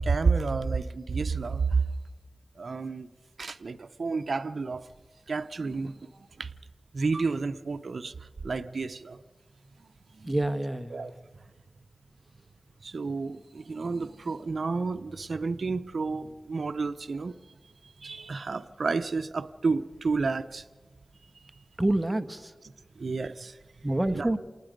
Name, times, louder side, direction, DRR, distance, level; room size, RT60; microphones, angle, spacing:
voice 1, 0.0-1.8 2.6-3.1 3.4-4.9 5.3-6.5 6.9-8.1 8.4-9.2 10.1-10.3 10.9-11.1 12.8-17.4 18.0-20.6 23.0-23.6 24.1-24.3, right 4 dB, 80° right, 0.7 m, -30 dB
voice 2, 10.2-11.1 21.8-22.5 23.8-24.4, right 1 dB, 20° right, 1.4 m, -27 dB
28.0 x 19.0 x 5.2 m
cardioid pair, 50°, 0 cm